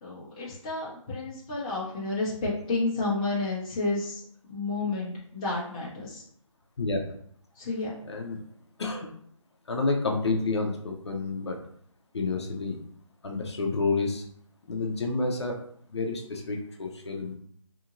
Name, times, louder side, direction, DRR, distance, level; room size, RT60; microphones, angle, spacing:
voice 1, 0.0-4.2 4.5-6.2 7.6-7.9, left 3 dB, 15° left, -7 dB, 0.6 m, -31 dB
voice 2, 6.8-7.1 8.1-8.4 8.8-9.1 9.7-11.6 12.1-12.8 13.2-14.2 14.7-15.6 15.9-17.3, left 3 dB, 55° left, 1 dB, 0.6 m, -29 dB
2.8 x 2.7 x 2.5 m, 0.65 s
figure-of-eight pair, 155°, 17 cm